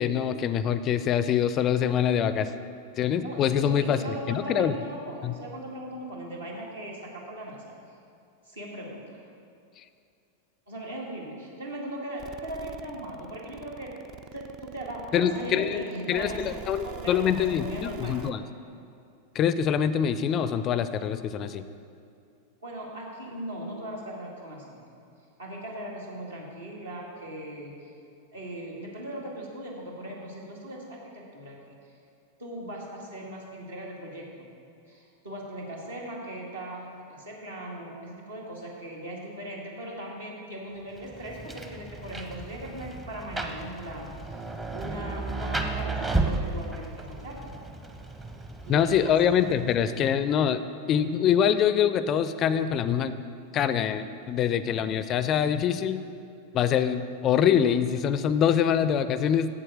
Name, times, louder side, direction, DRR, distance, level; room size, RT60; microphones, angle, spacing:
voice 1, 0.0-2.5 3.0-4.7 5.2-5.3 15.1-15.8 16.1-18.4 19.4-21.7 48.7-53.2 53.5-56.0 56.5-59.5, left 8 dB, 30° left, 13 dB, 0.4 m, -24 dB
voice 2, 3.2-7.6 8.5-9.2 10.7-13.9 14.3-18.2 22.6-24.8 25.4-27.8 28.3-31.7 32.4-34.5 34.9-44.2 44.7-47.5 48.6-49.1, right 1 dB, 70° right, -2 dB, 2.0 m, -39 dB
sound 1, 12.2-18.3, right 9 dB, 35° right, 0.4 m, -43 dB
Rain, 41.0-50.0, right 2 dB, 15° right, 0.8 m, -34 dB
7.8 x 7.6 x 6.4 m, 2.5 s
figure-of-eight pair, 90°, 0 cm